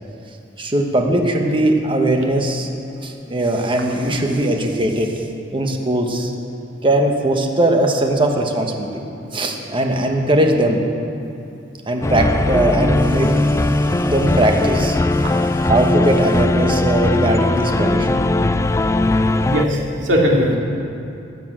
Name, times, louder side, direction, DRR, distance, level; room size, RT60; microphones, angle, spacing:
voice 1, 0.6-2.7 3.0-5.1 5.5-6.3 6.8-9.0 9.3-10.8 11.9-15.0 15.6-18.3, right 1 dB, 25° right, 2 dB, 1.2 m, -19 dB
sound 1, 12.0-19.6, left 2 dB, 15° left, 0.3 m, -19 dB
voice 2, 19.2-20.6, equal, 75° right, -2 dB, 2.4 m, -20 dB
13.5 x 8.9 x 7.6 m, 2.6 s
head